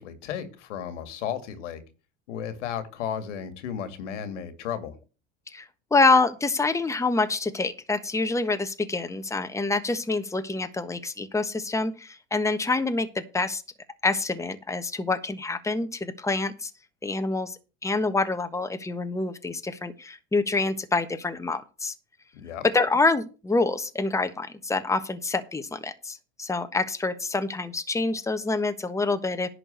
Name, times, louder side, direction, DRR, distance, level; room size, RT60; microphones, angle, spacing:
voice 1, 0.0-1.8 2.3-5.0 22.3-22.6, left 8 dB, 90° left, 2.3 m, -34 dB
voice 2, 5.5-13.6 14.0-16.7 17.0-21.9 22.7-29.5, left 3 dB, 10° left, 1.3 m, -26 dB
11.0 x 4.7 x 8.2 m
supercardioid pair, 100°, 35 cm